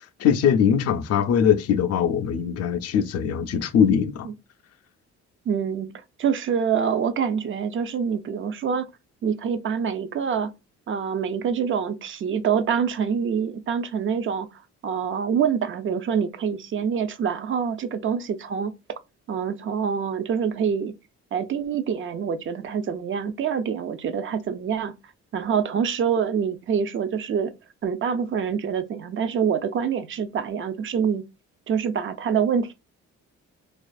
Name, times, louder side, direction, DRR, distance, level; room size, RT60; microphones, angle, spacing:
voice 1, 0.2-4.3, left 8 dB, 55° left, 0.4 m, -21 dB
voice 2, 5.5-8.9 9.2-10.5 10.9-14.5 14.8-18.7 19.3-20.9 21.3-24.9 25.3-27.5 27.8-31.2 31.7-32.7, right 7 dB, 40° right, 0.4 m, -26 dB
2.4 x 2.4 x 2.2 m
cardioid pair, 90°, 30 cm